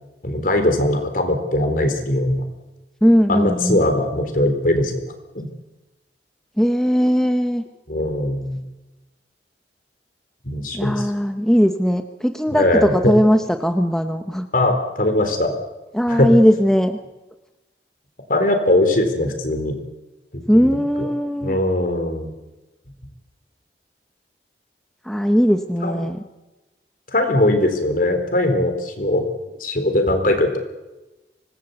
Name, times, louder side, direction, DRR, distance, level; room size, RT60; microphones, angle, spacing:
voice 1, 0.2-2.5 3.3-5.0 5.3-5.5 7.9-8.6 10.4-11.1 12.5-13.1 14.5-15.5 16.1-16.3 18.3-19.8 20.3-21.1 21.4-22.3 25.8-26.1 27.1-29.2 29.6-30.6, left 1 dB, 50° left, 6 dB, 4.0 m, -20 dB
voice 2, 3.0-3.8 6.6-7.6 10.7-12.6 12.9-14.5 15.9-17.0 20.5-21.6 25.1-26.2, equal, 5° left, 7 dB, 0.9 m, -18 dB
25.0 x 19.5 x 8.2 m, 1.1 s
head